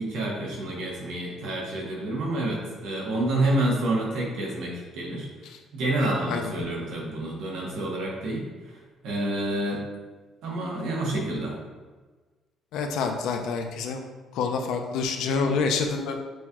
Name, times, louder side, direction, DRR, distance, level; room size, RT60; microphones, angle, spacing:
voice 1, 0.0-5.3 5.7-8.8 9.0-9.8 10.4-11.5, right 1 dB, 80° right, -2 dB, 1.1 m, -28 dB
voice 2, 6.3-6.7 12.7-14.0 14.3-16.2, left 4 dB, 80° left, 4 dB, 0.5 m, -27 dB
6.2 x 2.9 x 2.3 m, 1.3 s
cardioid pair, 150°, 0 cm